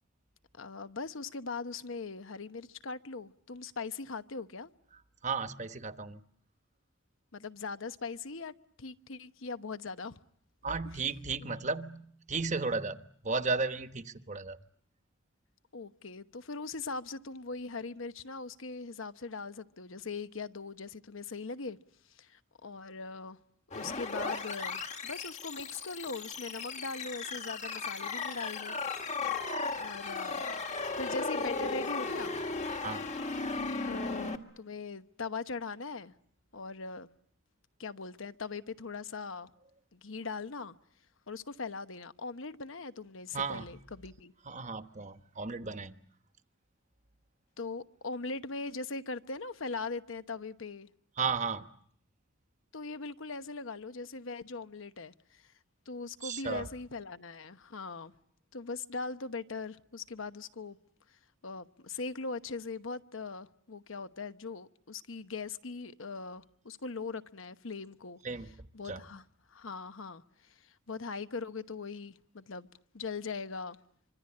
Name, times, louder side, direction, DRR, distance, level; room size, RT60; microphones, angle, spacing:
voice 1, 0.5-4.7 7.3-10.2 11.0-11.1 15.7-21.8 22.1-23.4 23.7-28.8 29.7-30.4 31.0-32.4 33.8-36.1 36.5-37.1 37.8-39.5 39.9-40.8 41.3-44.3 47.6-50.9 52.7-55.5 55.9-58.1 58.5-60.8 61.4-68.2 68.7-69.2 69.5-72.7 72.9-73.8, left 4 dB, 70° left, 1.0 m, -40 dB
voice 2, 5.2-6.2 10.6-14.6 32.8-33.0 43.3-43.7 44.5-46.0 51.2-51.7 56.2-56.7 68.2-68.5 68.9-69.0, right 4 dB, 35° right, 1.1 m, -34 dB
sound 1, 23.7-34.4, left 4 dB, 35° left, 1.8 m, -36 dB
25.5 x 25.5 x 8.6 m
head